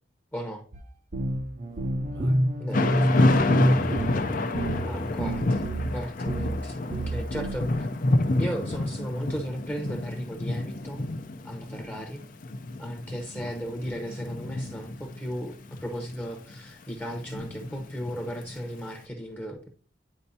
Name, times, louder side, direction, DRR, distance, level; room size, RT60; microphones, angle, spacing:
voice 1, 0.3-0.6 2.6-2.8 4.8-7.9 8.4-11.1 11.4-12.2 12.8-19.7, equal, 10° left, 0.9 m, -35 dB
sound 1, 0.7-0.8 1.1-5.9 6.3-6.6 6.9-7.6, right 1 dB, 45° right, 0.7 m, -28 dB
voice 2, 2.1-2.4 2.8-4.1 4.7-5.2, right 1 dB, 70° right, 1.6 m, -48 dB
Thunder / Rain, 2.7-18.8, left 2 dB, 50° left, 0.6 m, -29 dB
9.8 x 4.4 x 2.7 m
head